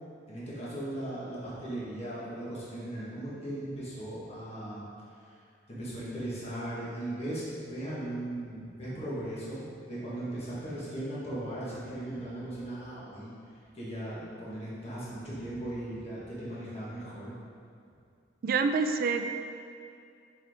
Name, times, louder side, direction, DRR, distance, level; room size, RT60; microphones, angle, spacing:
voice 1, 0.3-4.8 5.7-13.3 13.7-17.3, right 1 dB, 35° left, -8 dB, 1.4 m, -38 dB
voice 2, 18.4-19.3, right 4 dB, 50° right, 7 dB, 0.3 m, -27 dB
6.1 x 4.3 x 3.5 m, 2.4 s
head